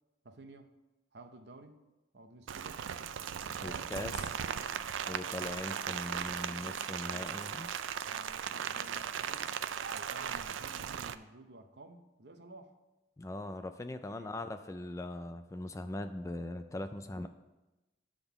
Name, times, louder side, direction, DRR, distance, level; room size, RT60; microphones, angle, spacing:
voice 1, 0.2-0.7 1.1-1.8 2.1-2.8 3.4-4.7 5.0-7.4 8.0-9.5 9.9-12.7 14.2-14.4, right 2 dB, 60° right, 7 dB, 0.7 m, -53 dB
Rain, 2.5-11.1, right 8 dB, 90° right, 0.4 m, -37 dB
voice 2, 3.6-4.4 5.1-7.8 13.2-17.3, left 1 dB, 15° left, 9 dB, 0.3 m, -40 dB
10.0 x 3.6 x 6.9 m, 1.0 s
head